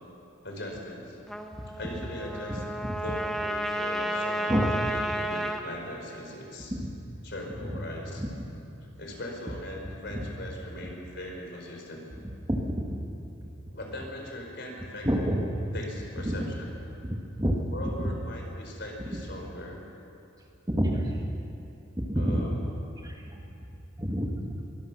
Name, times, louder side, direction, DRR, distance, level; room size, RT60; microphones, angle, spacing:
voice 1, 0.4-1.2 1.8-2.6 3.0-6.7 7.2-8.2 9.0-12.0 13.7-15.1 15.7-16.7 17.7-19.8 22.1-22.6, left 1 dB, 55° left, 0 dB, 4.6 m, -40 dB
Trumpet, 1.3-5.6, equal, ahead, 1.3 m, -32 dB
voice 2, 2.5-3.0 4.5-4.7 6.7-6.9 8.2-8.5 10.1-10.3 12.5-13.0 15.0-15.5 16.3-16.5 17.0-17.6 18.0-18.1 19.1-19.2 20.7-21.2 22.0-22.5 23.0-23.4 24.0-24.4, equal, 20° right, 1 dB, 1.8 m, -29 dB
24.0 x 19.5 x 6.1 m, 2.7 s
head